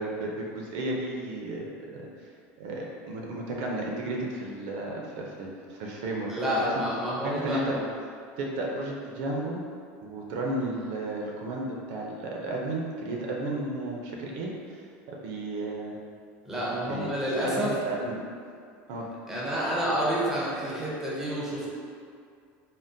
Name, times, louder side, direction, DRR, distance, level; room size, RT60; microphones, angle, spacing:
voice 1, 0.0-2.3 2.6-6.8 7.2-7.8 8.4-9.6 10.0-16.0 16.9-18.2 18.9-19.1, right 2 dB, 60° right, -2 dB, 0.4 m, -33 dB
voice 2, 6.3-7.8 16.5-17.7 19.3-21.7, equal, 5° right, -7 dB, 0.4 m, -29 dB
3.5 x 2.0 x 2.6 m, 2.3 s
cardioid pair, 175°, 6 cm